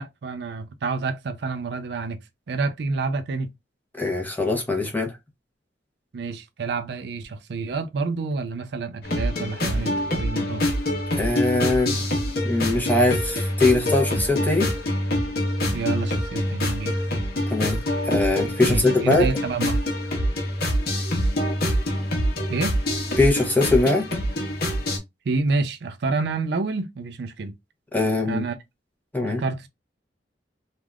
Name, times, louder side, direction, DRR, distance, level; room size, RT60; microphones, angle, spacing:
voice 1, 0.0-2.2 2.5-3.5 6.1-10.7 15.7-16.9 18.6-19.8 22.5-22.7 25.3-27.5 28.2-28.6 29.2-29.7, right 3 dB, 65° right, 0.4 m, -28 dB
voice 2, 4.0-5.1 11.1-12.0 12.4-14.7 17.5-17.8 18.0-19.3 23.2-24.1 27.9-28.4 29.1-29.4, left 2 dB, 10° left, 0.7 m, -21 dB
sound 1, 9.0-25.0, left 1 dB, 60° left, 1.0 m, -25 dB
3.3 x 2.4 x 2.3 m
head